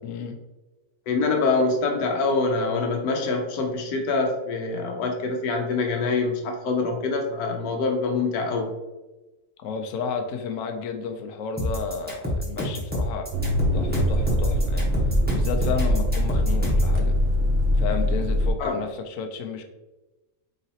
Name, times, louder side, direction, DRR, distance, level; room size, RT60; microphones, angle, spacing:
voice 1, 0.0-0.4 9.6-13.3 13.7-14.9 15.3-17.1 17.8-19.6, left 5 dB, 70° left, 5 dB, 0.9 m, -32 dB
voice 2, 1.1-8.7 18.6-18.8, left 3 dB, 90° left, 2 dB, 1.2 m, -25 dB
sound 1, 11.6-16.9, left 1 dB, 10° right, 0.9 m, -28 dB
sound 2, 13.3-18.5, left 1 dB, 60° right, 0.6 m, -22 dB
4.1 x 3.8 x 2.8 m, 1.1 s
omnidirectional pair, 1.5 m